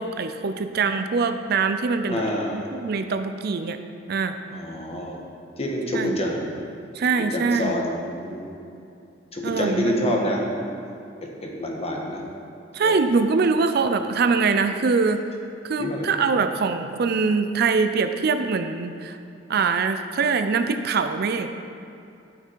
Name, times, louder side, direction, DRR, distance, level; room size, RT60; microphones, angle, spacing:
voice 1, 0.0-2.2 2.5-3.8 4.1-4.3 5.9-6.2 7.0-7.8 9.4-10.2 12.7-15.2 15.6-19.2 19.5-21.5, right 4 dB, 55° right, 8 dB, 0.5 m, -23 dB
voice 2, 2.0-2.7 4.5-5.2 5.6-6.5 7.3-8.6 9.3-10.8 11.2-12.2 12.8-12.9 15.8-16.1, equal, 35° left, -1 dB, 1.3 m, -27 dB
12.5 x 5.9 x 4.6 m, 2.7 s
head